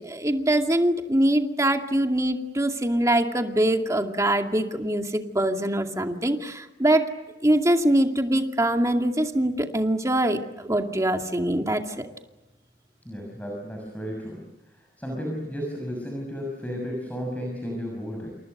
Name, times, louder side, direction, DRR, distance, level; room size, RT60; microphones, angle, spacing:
voice 1, 0.0-7.1 7.4-12.1, right 1 dB, 20° right, 4 dB, 2.3 m, -23 dB
voice 2, 13.0-14.4 15.0-18.4, equal, 10° left, 0 dB, 6.4 m, -33 dB
28.5 x 28.5 x 6.7 m, 1.1 s
head